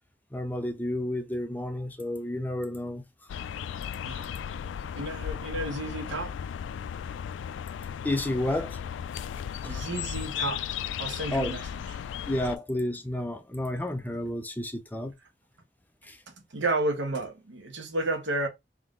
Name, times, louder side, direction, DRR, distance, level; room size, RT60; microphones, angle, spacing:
voice 1, 0.3-3.0 8.0-8.8 9.6-9.8 11.3-11.5 12.3-15.1 16.0-16.2, left 1 dB, 10° left, 0.5 m, -31 dB
sound 1, 3.3-12.6, left 8 dB, 80° left, 0.3 m, -35 dB
voice 2, 4.9-6.3 9.6-11.7 16.3-18.5, right 2 dB, 75° right, 1.1 m, -32 dB
3.7 x 2.9 x 3.7 m
head